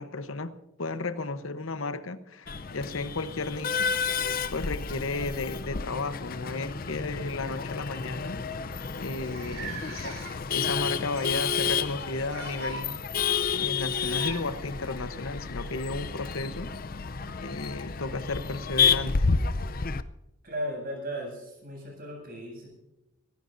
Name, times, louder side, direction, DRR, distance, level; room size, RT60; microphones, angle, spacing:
voice 1, 0.0-3.9 4.2-16.7 17.4-19.3, left 3 dB, 70° left, 1.0 m, -34 dB
Male speech man speaking / Laughter / Chatter, 2.5-20.0, left 6 dB, 40° left, 0.6 m, -30 dB
sound 1, 5.2-5.7 6.8-7.0 7.4-7.5 8.3-8.4 8.5-8.6 9.2-10.6 11.1-11.8 12.2-12.9 13.9-14.4 16.6-16.7 17.7-17.8, right 3 dB, 65° right, 4.3 m, -41 dB
voice 2, 20.4-22.7, equal, 40° right, 7.7 m, -36 dB
25.5 x 16.5 x 2.7 m
head